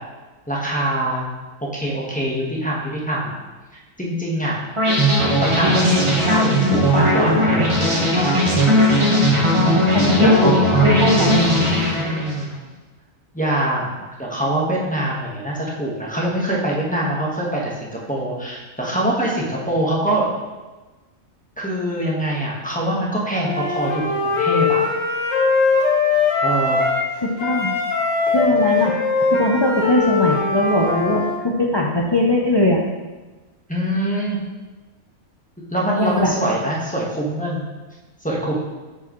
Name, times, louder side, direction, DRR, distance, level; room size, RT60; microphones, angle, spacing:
voice 1, 0.5-1.3 1.6-3.3 4.0-4.6 5.2-7.8 10.2-10.3 12.0-12.5 13.3-20.3 21.6-24.8 26.4-26.8 33.7-34.4 35.7-37.6 38.2-38.6, right 1 dB, 5° left, -5 dB, 1.2 m, -24 dB
sound 1, 4.8-12.4, equal, 25° right, 1.1 m, -17 dB
voice 2, 9.9-10.6 10.8-11.5 27.2-27.7 28.3-32.8 36.0-36.3, left 1 dB, 35° left, -1 dB, 0.4 m, -20 dB
Wind instrument woodwind instrument, 23.4-27.1 27.4-31.4, left 4 dB, 70° left, 1.4 m, -20 dB
8.8 x 4.8 x 3.1 m, 1.2 s
omnidirectional pair, 1.4 m